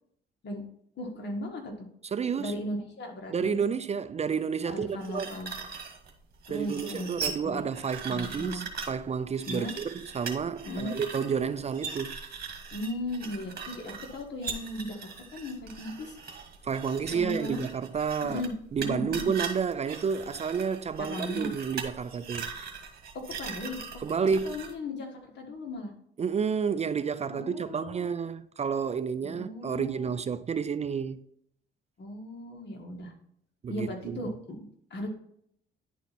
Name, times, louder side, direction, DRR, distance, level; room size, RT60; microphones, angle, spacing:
voice 1, 1.0-1.9 2.4-3.6 4.6-5.5 6.5-7.7 8.1-8.6 9.5-9.7 10.6-10.9 12.7-16.2 17.1-17.6 18.2-18.5 18.8-19.3 21.0-21.5 23.1-23.8 24.4-25.9 27.3-28.0 29.2-30.1 32.0-33.1 33.7-35.1, left 1 dB, 60° left, 1.7 m, -37 dB
voice 2, 2.0-2.6 3.3-5.3 6.5-12.2 16.6-18.4 18.7-22.5 24.0-24.6 26.2-31.2 33.6-34.3, right 6 dB, 35° right, 0.4 m, -30 dB
sound 1, 5.0-24.7, right 5 dB, 50° right, 1.5 m, -40 dB
10.0 x 4.2 x 4.2 m
cardioid pair, 90°, 20 cm